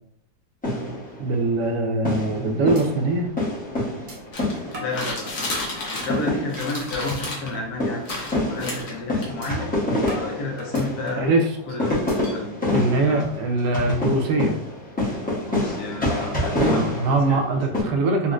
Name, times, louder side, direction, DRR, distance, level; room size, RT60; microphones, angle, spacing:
sound 1, 0.6-1.7 2.0-5.2 5.5-5.6 6.0-17.8, left 1 dB, 10° left, 0.4 m, -27 dB
voice 1, 1.2-3.3 11.2-11.5 12.7-14.6 16.6-18.3, right 2 dB, 80° right, 3 dB, 1.2 m, -22 dB
sound 2, 2.8-2.9 3.3-3.4 4.1-4.2 4.7-6.0 6.6-7.0 7.4-7.7 8.1-8.2 8.6-8.8 9.4-9.5 10.1-11.3 11.9-12.3, equal, 45° right, 0.6 m, -40 dB
sound 3, 4.3-6.2 6.5-7.5 8.0-9.2, left 2 dB, 55° left, 1.0 m, -31 dB
voice 2, 4.8-5.3 5.9-9.7 10.1-11.4 11.7-12.0 12.3-12.6 13.0-13.3 15.4-17.4, left 2 dB, 70° left, -1 dB, 1.3 m, -31 dB
4.1 x 2.1 x 2.4 m, 0.66 s
omnidirectional pair, 1.8 m